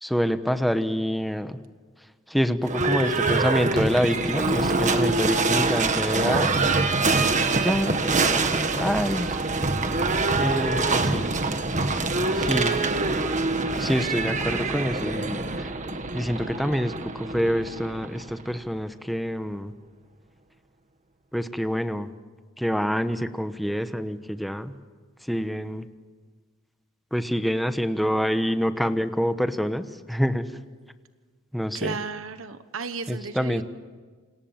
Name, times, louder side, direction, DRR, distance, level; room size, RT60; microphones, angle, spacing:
voice 1, 0.0-1.6 2.3-6.7 7.6-9.4 10.4-11.3 12.3-12.8 13.8-15.7 16.1-19.7 21.3-22.1 22.6-24.7 25.3-25.9 27.1-30.5 31.5-32.0 33.1-33.6, equal, ahead, 9 dB, 1.1 m, -26 dB
Livestock farm animals working animals / Bell, 2.6-18.5, right 3 dB, 40° right, 1.6 m, -25 dB
voice 2, 31.7-33.6, right 4 dB, 80° right, 10 dB, 1.1 m, -34 dB
28.5 x 26.5 x 7.3 m, 1.5 s
head